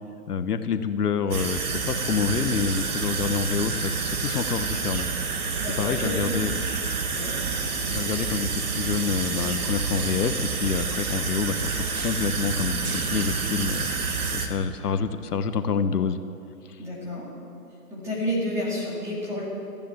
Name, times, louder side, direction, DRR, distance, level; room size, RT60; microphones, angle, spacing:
voice 1, 0.3-5.1 5.8-6.5 7.7-13.8 14.3-16.2 16.7-16.8, left 6 dB, 80° left, 10 dB, 1.1 m, -27 dB
sound 1, 1.3-14.5, right 4 dB, 70° right, 2.0 m, -28 dB
voice 2, 5.6-6.4 7.1-7.4 16.8-17.3 17.9-19.4, equal, 5° right, -7 dB, 2.3 m, -30 dB
14.0 x 10.5 x 7.6 m, 2.6 s
hypercardioid pair, 165°, 46 cm